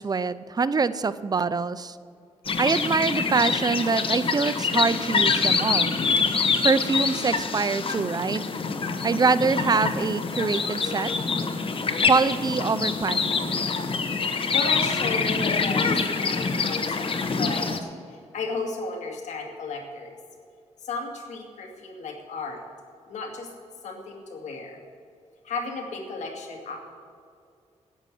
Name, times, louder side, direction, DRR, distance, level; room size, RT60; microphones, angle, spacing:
voice 1, 0.0-2.0 2.6-5.9 6.6-8.4 9.0-11.1 12.0-13.6, right 4 dB, 35° right, 14 dB, 0.6 m, -24 dB
sound 1, 2.4-17.8, left 4 dB, 50° left, 1.2 m, -25 dB
voice 2, 14.5-17.1 17.4-20.1 20.8-22.6 23.1-23.5 23.8-24.8 25.4-26.8, left 3 dB, 85° left, 2 dB, 2.2 m, -34 dB
11.0 x 9.1 x 8.5 m, 2.4 s
cardioid pair, 90°, 12 cm